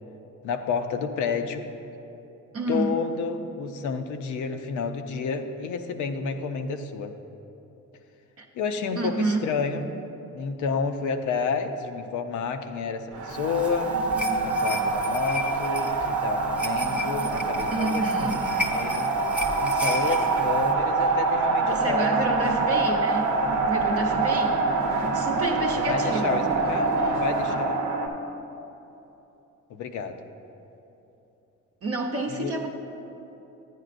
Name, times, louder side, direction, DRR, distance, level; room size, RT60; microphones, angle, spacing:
voice 1, 0.4-1.7 2.7-7.1 8.5-9.9 10.3-13.9 14.4-19.1 19.6-22.2 25.3-27.8 29.7-30.2 32.4-32.6, left 5 dB, 80° left, 7 dB, 0.6 m, -30 dB
voice 2, 2.5-3.0 8.4-8.5 9.0-9.4 17.7-18.4 21.6-23.4 23.7-24.7 25.1-26.4 31.8-32.7, right 2 dB, 50° right, 0 dB, 0.8 m, -29 dB
sound 1, 13.1-28.1, right 3 dB, 80° right, 0.8 m, -25 dB
sound 2, 13.3-20.7, left 1 dB, 5° right, 0.7 m, -35 dB
10.5 x 9.2 x 2.5 m, 3.0 s
cardioid pair, 90°, 30 cm